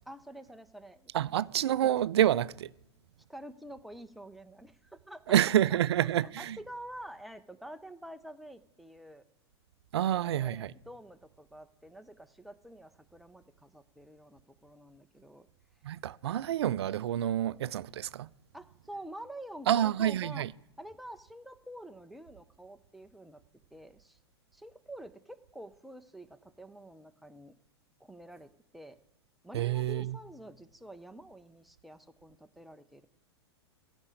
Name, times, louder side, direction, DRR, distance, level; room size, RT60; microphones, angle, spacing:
voice 1, 0.1-1.1 3.3-9.2 10.1-15.5 18.5-20.5 20.8-23.4 23.7-24.2 24.5-27.5 28.0-29.0 29.4-33.1, right 1 dB, ahead, 0.6 m, -48 dB
voice 2, 1.1-2.7 5.3-6.6 9.9-10.7 15.8-18.3 19.7-20.5 29.5-30.2, right 11 dB, 70° right, 0.4 m, -28 dB
15.0 x 5.2 x 8.5 m
hypercardioid pair, 100°, 14 cm